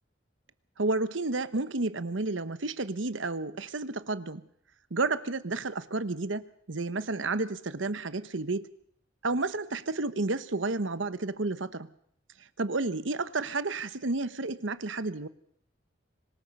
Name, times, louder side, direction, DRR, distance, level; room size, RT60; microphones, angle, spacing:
voice 1, 0.8-4.4 4.9-8.7 9.2-11.9 12.6-15.3, right 3 dB, 75° right, 14 dB, 1.1 m, -31 dB
25.0 x 20.0 x 5.5 m, 0.66 s
head